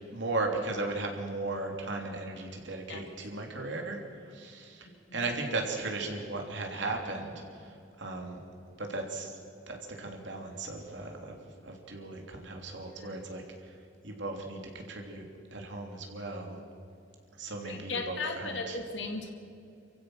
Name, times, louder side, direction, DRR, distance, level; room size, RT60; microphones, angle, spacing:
voice 1, 0.1-8.4 8.8-9.4 9.7-11.4 11.6-13.8 14.0-15.2 15.5-16.6 17.4-18.8, right 2 dB, 65° right, 2 dB, 3.3 m, -36 dB
voice 2, 4.8-5.2 13.0-13.2 17.6-19.3, left 3 dB, 65° left, 4 dB, 2.4 m, -37 dB
28.5 x 15.5 x 6.4 m, 2.6 s
head